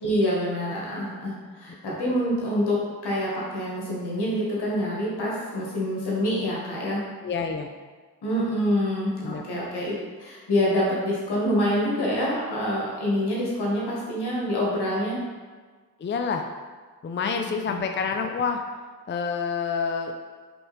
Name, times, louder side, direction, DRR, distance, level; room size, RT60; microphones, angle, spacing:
voice 1, 0.0-7.1 8.2-15.2 17.2-17.4 17.7-17.8, equal, 80° left, -4 dB, 1.4 m, -26 dB
voice 2, 7.2-7.7 9.2-9.4 16.0-16.4 17.0-18.6 19.1-20.1, left 5 dB, 30° left, 4 dB, 0.5 m, -28 dB
3.8 x 3.4 x 3.9 m, 1.4 s
supercardioid pair, 40°, 39 cm